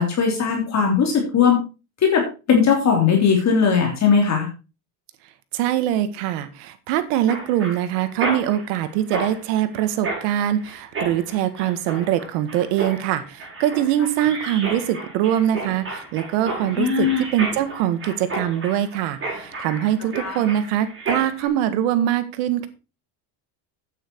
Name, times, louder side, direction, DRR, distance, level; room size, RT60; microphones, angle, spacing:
voice 1, 0.0-1.6 2.0-2.2 2.5-4.5 16.8-17.2 20.2-20.4, left 6 dB, 35° left, 1 dB, 3.3 m, -18 dB
voice 2, 5.5-22.7, right 11 dB, 85° right, 11 dB, 1.8 m, -23 dB
Mechanisms, 7.3-21.5, right 3 dB, 25° right, 6.2 m, -32 dB
9.2 x 9.2 x 4.5 m, 0.31 s
cardioid pair, 130°, 45 cm